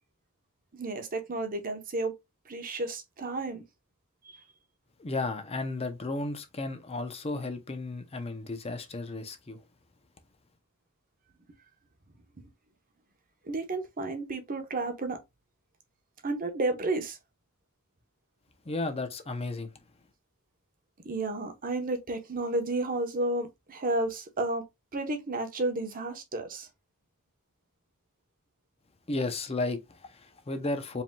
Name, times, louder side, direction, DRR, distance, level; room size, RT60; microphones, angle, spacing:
voice 1, 0.7-2.2 2.5-3.6 4.2-4.4 13.5-15.2 16.2-17.2 21.0-24.6 24.9-26.7, right 2 dB, 40° right, 0.9 m, -32 dB
voice 2, 5.0-9.6 18.6-19.7 29.1-31.0, left 2 dB, 30° left, 0.6 m, -34 dB
5.0 x 3.5 x 2.2 m
head